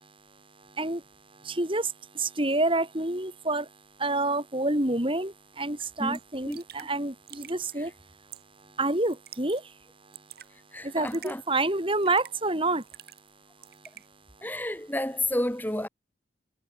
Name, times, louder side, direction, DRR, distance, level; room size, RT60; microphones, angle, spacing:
voice 1, 1.4-3.7 4.0-7.9 8.8-9.7 10.8-12.8, right 2 dB, 30° right, 3.4 m, -28 dB
Raindrop / Drip, 5.8-5.9 6.1-6.2 6.5-6.9 7.3-7.8 8.3-8.6 9.1-9.6 9.9-10.5 11.1-11.4 12.0-12.4 12.8-13.3 13.6-14.1, right 12 dB, 55° right, 5.8 m, -47 dB
voice 2, 10.7-11.4 14.4-15.9, left 1 dB, 10° left, 3.0 m, -30 dB
head